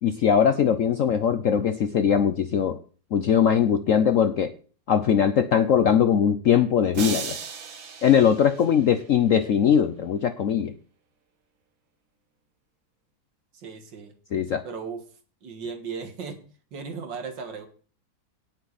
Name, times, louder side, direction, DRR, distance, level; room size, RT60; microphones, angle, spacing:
voice 1, 0.0-2.8 3.1-4.5 4.9-7.4 8.0-10.7 14.3-14.6, left 8 dB, 65° left, 10 dB, 0.8 m, -21 dB
sound 1, 6.9-9.2, right 6 dB, 85° right, 2.1 m, -36 dB
voice 2, 13.5-14.1 14.6-15.0 15.4-16.4 16.7-17.7, right 5 dB, 70° right, 7 dB, 2.3 m, -36 dB
17.5 x 6.6 x 4.1 m, 0.40 s
omnidirectional pair, 2.0 m